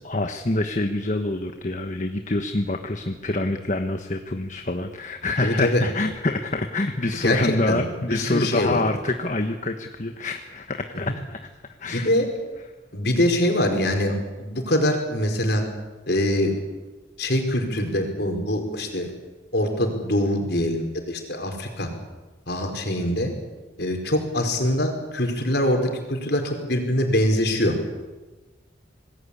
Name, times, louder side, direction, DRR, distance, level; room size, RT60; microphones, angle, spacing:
voice 1, 0.0-11.5 11.8-12.1, left 2 dB, 40° left, 6 dB, 1.2 m, -26 dB
voice 2, 5.4-5.8 7.2-7.4 7.7-8.8 11.1-11.2 11.9-12.3 12.9-15.6 16.1-16.5 17.2-19.1 19.5-21.9 22.5-23.3 23.8-27.8, left 1 dB, 55° left, 4 dB, 5.0 m, -23 dB
26.5 x 20.5 x 8.6 m, 1.2 s
head